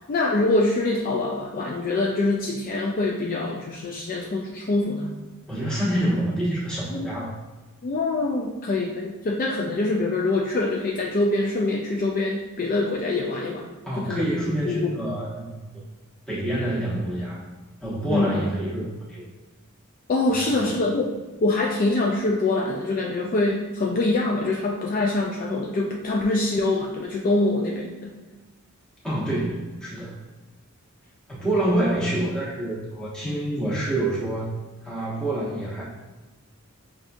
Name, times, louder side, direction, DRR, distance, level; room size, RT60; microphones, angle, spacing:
voice 1, 0.0-5.1 6.9-7.1 7.8-13.7 14.0-14.2 14.7-14.9 18.1-18.3 20.1-21.1 21.4-28.1, left 2 dB, 40° left, -1 dB, 0.3 m, -24 dB
voice 2, 5.5-7.3 13.8-15.7 16.3-17.4 17.8-19.3 20.5-20.9 29.0-30.2 31.3-34.5 34.8-35.8, right 1 dB, 5° left, -9 dB, 1.1 m, -27 dB
5.8 x 2.4 x 2.6 m, 1.2 s
head